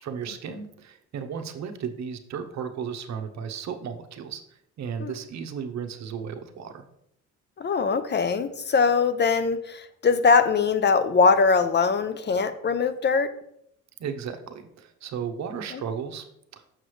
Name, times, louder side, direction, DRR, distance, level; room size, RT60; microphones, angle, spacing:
voice 1, 0.0-4.4 4.8-6.8 14.0-16.3 16.5-16.6, right 7 dB, 65° right, 8 dB, 0.8 m, -34 dB
voice 2, 7.6-13.3 15.7-15.8, left 5 dB, 35° left, 12 dB, 0.5 m, -22 dB
6.5 x 6.1 x 3.2 m, 0.74 s
cardioid pair, 90°, 30 cm